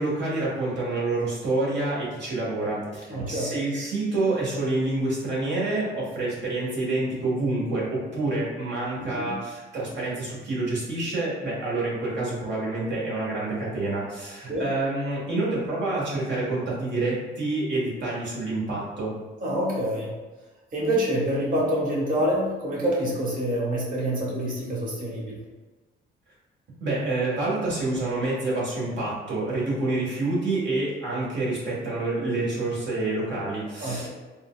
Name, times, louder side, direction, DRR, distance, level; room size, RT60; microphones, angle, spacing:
voice 1, 0.0-19.1 26.8-34.1, right 2 dB, 65° right, -5 dB, 1.3 m, -27 dB
voice 2, 3.1-3.5 9.1-9.4 14.5-14.7 19.4-20.1 20.7-25.4 33.8-34.1, equal, 45° right, -5 dB, 1.2 m, -26 dB
3.7 x 2.2 x 2.3 m, 1.3 s
cardioid pair, 90°, 20 cm